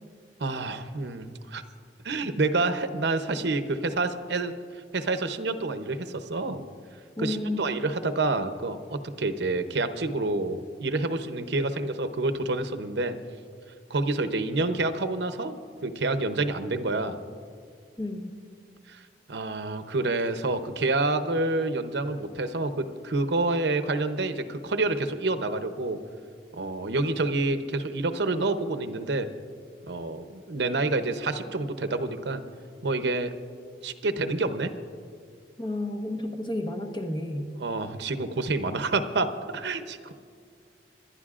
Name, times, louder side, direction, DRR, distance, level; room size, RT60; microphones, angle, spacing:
voice 1, 0.4-1.6 2.0-4.6 4.9-6.6 7.2-13.2 13.9-15.6 15.8-17.2 18.9-19.0 19.3-26.0 26.5-29.3 29.9-32.4 32.8-33.3 33.8-34.7 37.6-40.1, right 2 dB, 75° right, 9 dB, 0.7 m, -28 dB
voice 2, 7.2-7.6 18.0-18.3 35.6-37.5, left 1 dB, 25° left, 1 dB, 1.2 m, -31 dB
26.0 x 11.5 x 2.5 m, 2.1 s
head